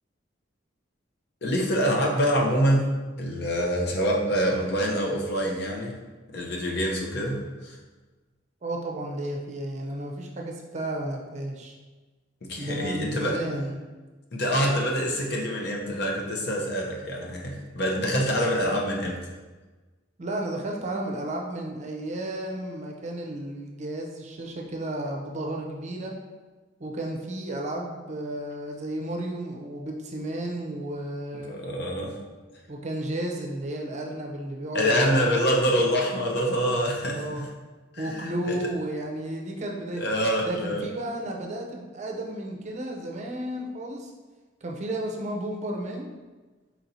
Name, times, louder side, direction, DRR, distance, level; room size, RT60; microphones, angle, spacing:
voice 1, 1.4-2.9 3.2-5.9 6.3-7.8 12.4-13.4 14.3-19.2 31.3-32.2 34.7-37.5 37.9-38.6 40.0-40.8, equal, 60° left, -1 dB, 0.8 m, -26 dB
voice 2, 8.6-11.7 12.6-13.8 20.2-26.1 26.8-31.6 32.7-34.8 35.1-35.4 37.1-37.5 38.0-40.0 40.4-44.1 44.6-46.1, right 1 dB, 40° right, 0 dB, 0.6 m, -33 dB
4.3 x 4.3 x 2.7 m, 1.3 s
head